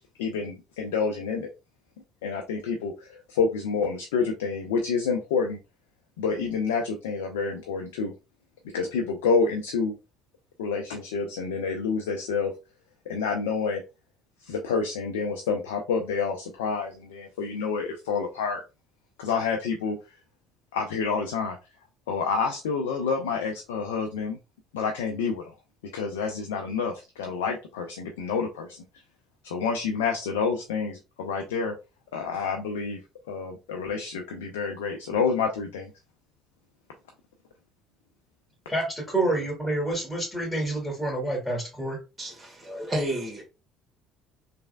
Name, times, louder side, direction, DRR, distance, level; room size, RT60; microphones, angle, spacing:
voice 1, 0.2-1.5 2.2-5.6 6.2-8.1 8.7-9.9 10.6-12.5 13.1-13.8 14.4-18.6 19.2-20.0 20.7-21.6 22.1-24.4 24.7-25.5 25.9-28.8 29.4-31.8 32.1-33.0 33.3-35.9, left 5 dB, 85° left, 0.4 m, -28 dB
voice 2, 38.7-42.0, right 2 dB, 5° left, 2.0 m, -28 dB
voice 3, 42.2-43.4, right 1 dB, 25° right, 1.8 m, -31 dB
3.4 x 3.2 x 2.2 m
hypercardioid pair, 60°, 0 cm